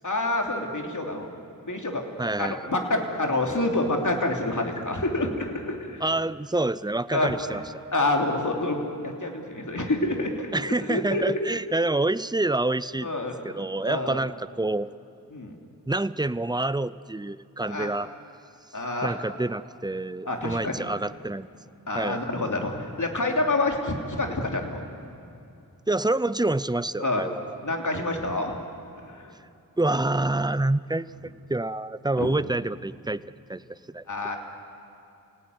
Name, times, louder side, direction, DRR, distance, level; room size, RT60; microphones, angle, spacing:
voice 1, 0.0-1.3 1.7-2.1 2.4-6.0 7.1-7.6 7.9-11.4 13.0-14.2 15.3-15.5 17.6-17.9 18.7-19.2 20.2-20.7 21.9-24.8 27.0-27.2 27.6-28.5 29.1-29.3 32.2-32.3 34.1-34.4, left 2 dB, 55° left, 2 dB, 3.2 m, -27 dB
voice 2, 2.2-2.7 6.0-7.6 10.5-13.1 13.4-14.9 15.9-18.1 19.0-21.5 21.9-22.2 25.9-27.6 29.8-31.1 31.5-33.2 33.5-34.0, right 2 dB, 10° right, 17 dB, 0.6 m, -27 dB
27.5 x 17.5 x 9.6 m, 2.6 s
wide cardioid pair, 45°, 35 cm